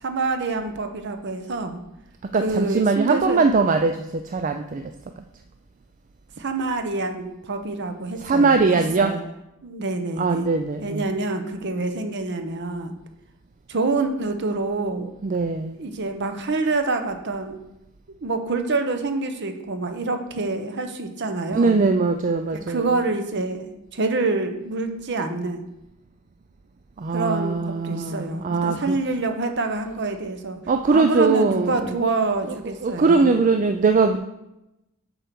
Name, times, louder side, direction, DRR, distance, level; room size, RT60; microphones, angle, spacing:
voice 1, 0.0-1.8 2.4-3.4 6.4-9.2 9.6-10.5 10.8-12.9 13.7-15.1 15.8-17.6 18.1-21.8 22.5-25.7 27.1-30.6 30.9-33.4, right 3 dB, 50° right, 7 dB, 0.9 m, -26 dB
voice 2, 2.3-4.8 8.2-9.1 10.2-11.0 15.2-15.8 21.5-22.9 27.0-29.0 30.7-31.8 32.8-34.2, right 4 dB, 35° right, 7 dB, 0.4 m, -21 dB
7.9 x 4.5 x 6.8 m, 0.90 s
head